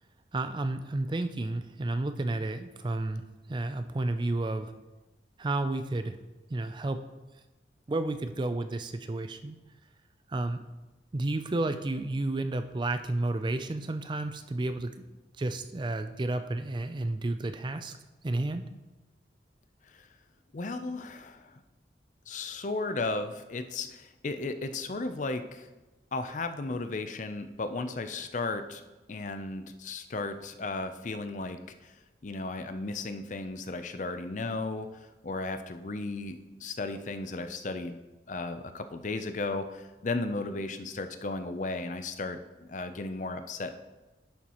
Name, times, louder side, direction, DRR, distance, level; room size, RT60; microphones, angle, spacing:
voice 1, 0.3-4.7 5.4-6.2 6.5-7.0 7.9-9.6 10.3-10.6 11.1-14.9 15.4-18.0 18.2-18.6, right 2 dB, 25° right, 9 dB, 0.4 m, -31 dB
voice 2, 20.5-21.6 22.3-25.7 26.1-28.8 29.1-32.0 32.2-38.0 38.3-43.7, left 3 dB, 45° left, 9 dB, 0.5 m, -35 dB
11.0 x 7.0 x 3.0 m, 1.1 s
head